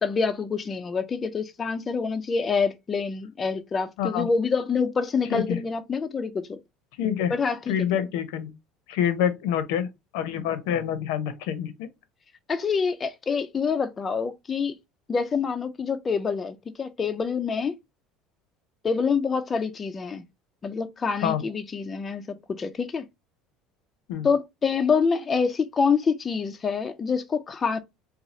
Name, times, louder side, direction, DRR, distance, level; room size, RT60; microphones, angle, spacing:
voice 1, 0.0-6.6 7.3-7.7 12.5-14.7 15.1-17.8 18.8-20.2 20.6-23.0 24.2-27.8, left 5 dB, 20° left, 0.3 m, -26 dB
voice 2, 7.0-7.3 7.7-8.5 8.9-9.9 10.1-11.9 21.2-21.4 24.1-24.3, left 9 dB, 80° left, 0.6 m, -26 dB
2.6 x 2.3 x 4.1 m
cardioid pair, 160°, 0 cm